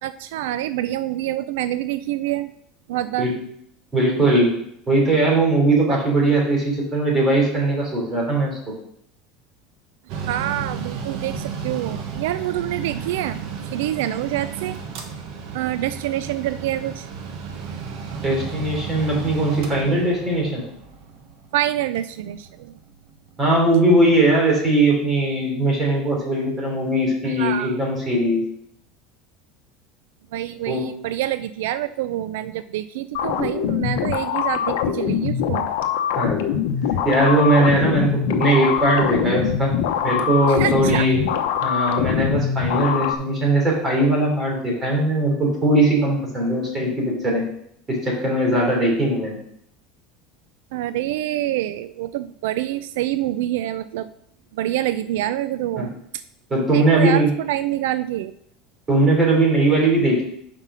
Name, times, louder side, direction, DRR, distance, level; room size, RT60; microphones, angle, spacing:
voice 1, 0.0-2.5 2.9-3.3 10.3-14.8 15.5-17.1 21.5-22.8 27.2-27.8 30.3-35.7 40.5-41.1 50.7-54.1 54.5-55.9 56.7-58.3, right 13 dB, 85° right, 13 dB, 0.3 m, -26 dB
voice 2, 3.9-4.5 4.9-8.6 18.2-20.6 23.4-28.4 30.7-30.8 36.2-36.5 37.0-39.7 40.0-41.2 41.6-47.4 47.9-49.4 55.8-55.9 56.5-57.3 58.9-60.2, right 2 dB, 20° right, -2 dB, 3.2 m, -19 dB
Mechanical fan, 10.1-23.4, right 6 dB, 60° right, 1.2 m, -33 dB
sound 1, 33.1-43.1, left 8 dB, 85° left, 0.7 m, -23 dB
5.6 x 5.2 x 6.1 m, 0.69 s
supercardioid pair, 150°, 0 cm